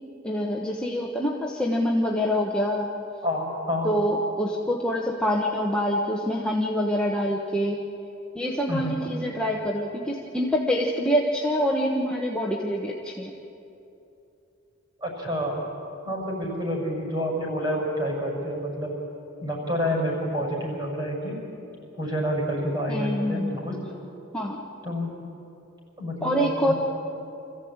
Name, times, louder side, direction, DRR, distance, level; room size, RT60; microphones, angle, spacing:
voice 1, 0.2-2.9 3.8-7.8 8.3-13.3 22.9-23.6 24.3-24.6 26.2-26.7, equal, 5° left, -2 dB, 1.2 m, -25 dB
voice 2, 3.2-3.9 8.7-9.1 9.4-9.5 15.0-15.6 16.0-18.9 19.4-21.4 22.0-23.8 24.8-25.1 26.0-26.7, equal, 25° right, -3 dB, 6.2 m, -28 dB
26.0 x 15.0 x 8.8 m, 2.9 s
head